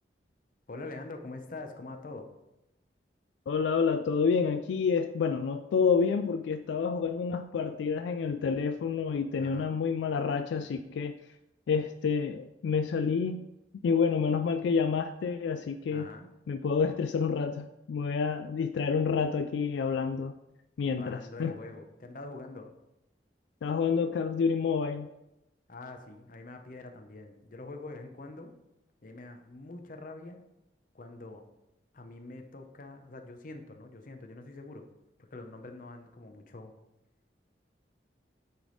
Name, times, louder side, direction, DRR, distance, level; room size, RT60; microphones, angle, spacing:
voice 1, 0.7-2.3 9.4-9.8 15.9-16.3 20.8-22.7 25.7-28.5 29.0-30.4 30.9-31.5 31.9-34.9 35.3-36.7, left 2 dB, 50° left, 5 dB, 0.7 m, -44 dB
voice 2, 3.5-11.1 11.7-13.5 13.8-16.1 16.5-20.3 20.8-21.6 23.6-25.1, left 5 dB, 80° left, 7 dB, 0.3 m, -28 dB
9.1 x 3.4 x 3.9 m, 0.90 s
head